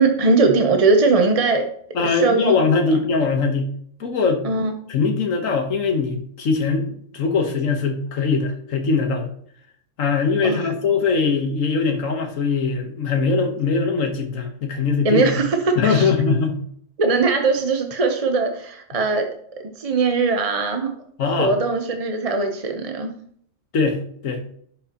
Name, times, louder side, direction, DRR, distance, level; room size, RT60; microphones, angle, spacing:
voice 1, 0.0-1.7 2.0-2.5 4.4-4.7 10.4-10.7 15.0-16.1 17.0-19.3 19.8-20.9 21.3-23.1, right 3 dB, 35° right, 4 dB, 0.8 m, -20 dB
voice 2, 1.9-3.7 4.0-4.4 4.9-9.3 10.0-15.4 15.8-16.6 21.2-21.5 23.7-24.0 24.2-24.4, left 4 dB, 85° left, 5 dB, 1.5 m, -21 dB
11.5 x 6.1 x 2.9 m, 0.63 s
omnidirectional pair, 1.3 m